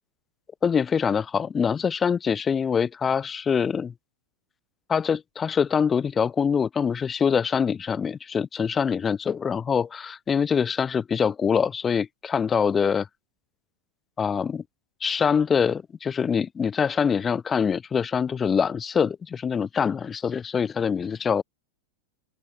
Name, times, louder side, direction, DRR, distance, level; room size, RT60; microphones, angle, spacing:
voice 1, 0.6-3.9 4.9-13.1 14.2-14.6 15.0-21.4, left 6 dB, 20° left, 0.8 m, -24 dB
open air
figure-of-eight pair, 90°, 0 cm